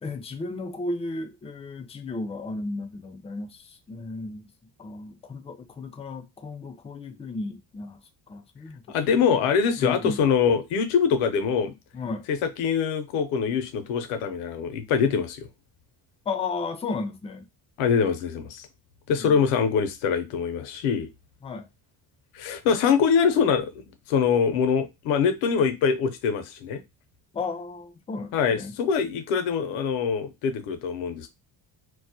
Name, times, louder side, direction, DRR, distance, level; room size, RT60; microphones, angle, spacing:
voice 1, 0.0-4.5 4.8-8.0 8.3-8.8 9.8-10.2 11.9-12.2 16.3-17.5 19.1-19.4 21.4-21.7 27.3-28.7, left 3 dB, 15° left, 0.3 m, -34 dB
voice 2, 8.9-11.7 12.3-15.5 17.8-18.7 19.1-21.1 22.3-23.7 24.1-26.8 28.3-31.3, left 6 dB, 85° left, 0.6 m, -24 dB
2.2 x 2.1 x 2.7 m
supercardioid pair, 70°, 49 cm